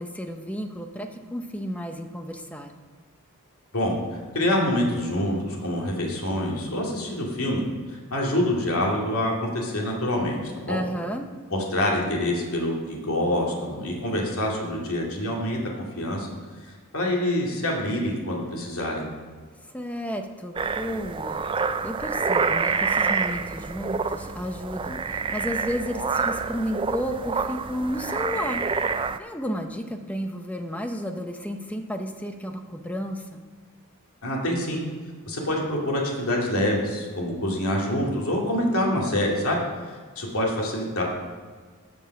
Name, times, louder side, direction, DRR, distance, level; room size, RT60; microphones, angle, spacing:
voice 1, 0.0-2.7 10.7-11.3 19.7-21.4 21.8-28.7 29.2-33.4, equal, 5° left, 5 dB, 0.7 m, -32 dB
voice 2, 4.3-7.6 7.9-10.8 11.5-16.3 16.6-19.0 34.2-34.8 35.3-39.6 39.9-41.0, left 1 dB, 75° left, -2 dB, 2.4 m, -26 dB
sound 1, 20.6-29.2, right 5 dB, 25° right, 0.3 m, -27 dB
15.0 x 5.4 x 5.9 m, 1.6 s
head